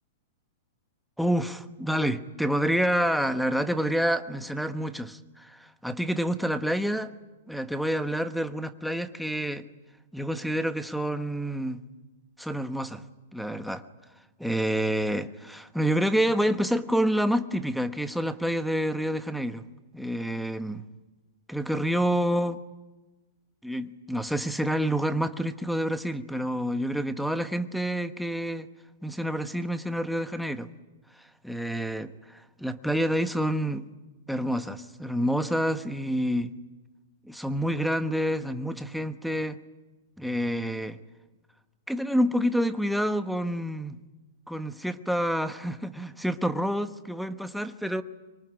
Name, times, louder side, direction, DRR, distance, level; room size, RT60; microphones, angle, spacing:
voice 1, 1.2-7.1 7.5-9.7 10.1-11.8 12.4-13.0 13.3-13.8 14.4-19.6 19.9-20.8 21.5-22.6 23.6-28.7 29.0-30.7 31.1-33.8 34.3-36.5 37.2-39.6 40.2-41.0 41.9-44.0 44.5-48.0, equal, ahead, 1.2 m, -28 dB
25.0 x 23.0 x 9.9 m
hypercardioid pair, 135°, 0 cm